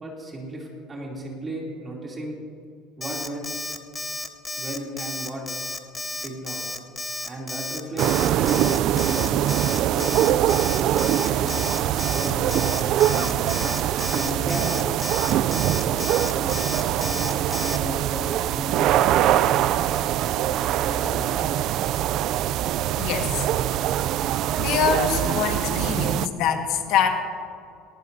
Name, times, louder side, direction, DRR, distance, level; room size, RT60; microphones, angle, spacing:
voice 1, 0.0-2.4 3.0-3.5 4.6-5.4 6.2-6.6 7.3-9.5 9.8-11.6 12.1-13.2 14.0-14.7 15.8-19.4 20.5-21.5, right 1 dB, 20° right, -2 dB, 2.9 m, -35 dB
Alarm, 3.0-17.8, left 1 dB, 10° left, 0.7 m, -32 dB
sound 1, 8.0-26.3, right 12 dB, 45° right, 0.3 m, -23 dB
sound 2, 13.1-14.0 14.4-14.9 16.1-16.8 19.5-20.5 21.9-22.1 22.5-22.6 24.1-25.4, right 4 dB, 85° right, 3.5 m, -39 dB
voice 2, 23.0-23.4 24.3-27.1, left 8 dB, 60° left, 4 dB, 1.6 m, -25 dB
19.5 x 18.5 x 2.7 m, 2.3 s
cardioid pair, 160°, 0 cm